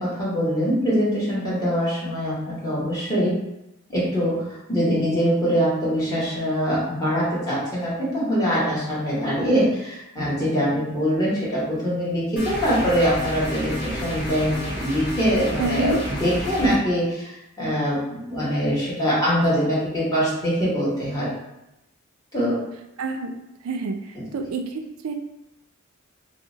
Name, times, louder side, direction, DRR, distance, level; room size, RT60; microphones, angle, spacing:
voice 1, 0.0-3.3 3.9-17.3 17.6-21.3 22.3-22.6, equal, 15° left, -9 dB, 1.2 m, -23 dB
sound 1, 12.4-16.8, equal, 50° left, 1.0 m, -31 dB
voice 2, 15.6-16.0 23.0-23.3 23.6-24.0 24.3-25.1, right 3 dB, 85° right, 5 dB, 0.4 m, -27 dB
2.7 x 2.1 x 3.7 m, 0.90 s
head